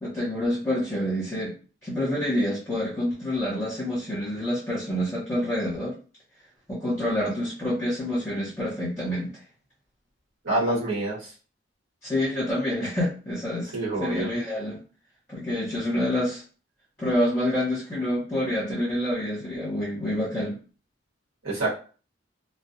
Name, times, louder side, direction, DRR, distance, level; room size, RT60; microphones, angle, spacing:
voice 1, 0.0-1.5 1.8-5.9 6.7-9.4 12.0-13.7 14.0-14.8 15.3-16.4 17.0-20.6, left 1 dB, 15° left, -9 dB, 1.0 m, -27 dB
voice 2, 10.4-11.3 13.7-14.3 21.4-21.7, right 2 dB, 85° right, -6 dB, 1.2 m, -26 dB
2.4 x 2.2 x 2.6 m, 0.38 s
head